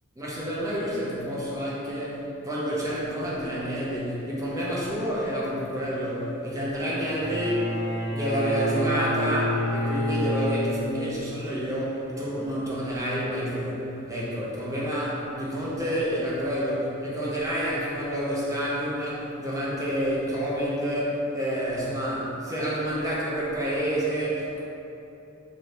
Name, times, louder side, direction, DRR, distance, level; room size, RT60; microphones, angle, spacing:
voice 1, 0.2-7.7 8.1-24.6, equal, 15° right, -7 dB, 0.5 m, -29 dB
Bowed string instrument, 7.0-11.1, equal, 55° left, 0.7 m, -28 dB
2.7 x 2.5 x 3.2 m, 2.9 s
head